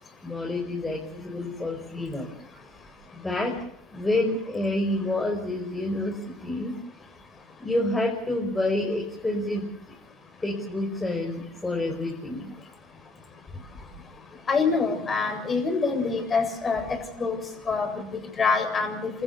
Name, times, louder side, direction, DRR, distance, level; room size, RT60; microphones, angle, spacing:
voice 1, 0.2-2.3 3.2-3.5 3.9-6.7 7.6-9.6 10.4-12.5, left 2 dB, 15° left, 1 dB, 5.7 m, -28 dB
voice 2, 14.5-16.8 17.2-17.4 17.7-18.1 18.4-19.1, left 4 dB, 30° left, 6 dB, 7.4 m, -25 dB
29.5 x 14.5 x 8.4 m, 0.71 s
hypercardioid pair, 85°, 0 cm